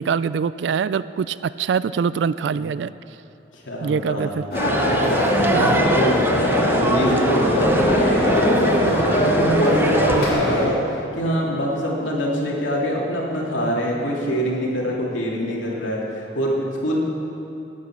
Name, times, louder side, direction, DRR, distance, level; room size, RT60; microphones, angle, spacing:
voice 1, 0.0-2.9 3.8-4.4 5.5-5.8, right 6 dB, 70° right, 16 dB, 0.3 m, -24 dB
voice 2, 3.5-4.3 5.5-6.2 6.6-17.0, equal, 85° left, -3 dB, 2.9 m, -25 dB
sound 1, 4.5-10.7, equal, 50° left, 3.1 m, -21 dB
sound 2, 4.5-10.3, right 1 dB, 10° right, 0.7 m, -24 dB
17.5 x 9.4 x 6.1 m, 2.8 s
head